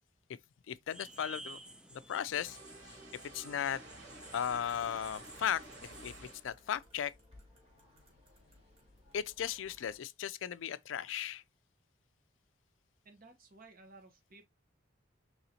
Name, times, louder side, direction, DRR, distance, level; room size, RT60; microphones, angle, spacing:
voice 1, 0.7-1.6 1.9-3.0 3.3-3.8 4.3-5.6 5.9-7.1 9.1-11.4, left 9 dB, 75° left, 0.4 m, -36 dB
sound 1, 0.9-6.3, right 1 dB, 5° right, 0.6 m, -52 dB
sound 2, 2.3-6.5, right 2 dB, 65° right, 2.3 m, -52 dB
sound 3, 3.8-9.9, left 1 dB, 30° right, 2.6 m, -61 dB
voice 2, 13.0-14.5, right 3 dB, 50° right, 1.0 m, -56 dB
4.8 x 3.9 x 2.8 m
head